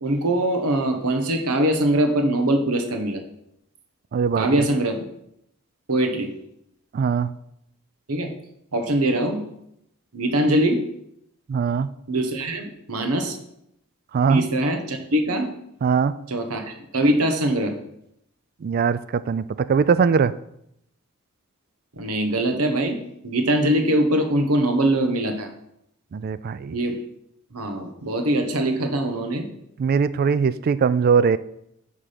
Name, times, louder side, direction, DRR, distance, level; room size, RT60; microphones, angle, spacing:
voice 1, 0.0-3.2 4.4-5.0 5.9-6.3 8.1-8.3 8.7-9.4 10.1-10.8 12.1-13.4 14.3-15.5 16.3-17.8 21.9-25.5 26.7-26.9 27.5-29.5, right 1 dB, 85° right, 5 dB, 1.2 m, -22 dB
voice 2, 4.1-4.7 6.9-7.3 11.5-11.9 14.1-14.4 15.8-16.1 18.6-20.3 26.1-26.8 29.8-31.4, right 6 dB, 45° right, 15 dB, 0.3 m, -21 dB
9.8 x 3.7 x 5.1 m, 0.77 s
head